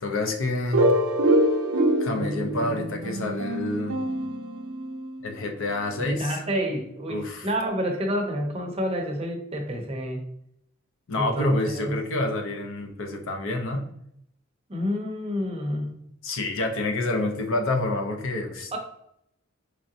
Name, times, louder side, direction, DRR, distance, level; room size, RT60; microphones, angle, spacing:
voice 1, 0.0-0.9 2.0-4.0 5.2-6.4 7.1-7.5 11.1-13.9 16.2-18.8, left 2 dB, 65° left, 4 dB, 0.6 m, -28 dB
sound 1, 0.7-5.3, right 1 dB, 70° right, 0.5 m, -25 dB
voice 2, 6.0-10.2 11.1-12.0 14.7-16.0 18.7-18.8, equal, 30° right, 2 dB, 0.6 m, -29 dB
3.7 x 3.2 x 2.7 m, 0.75 s
head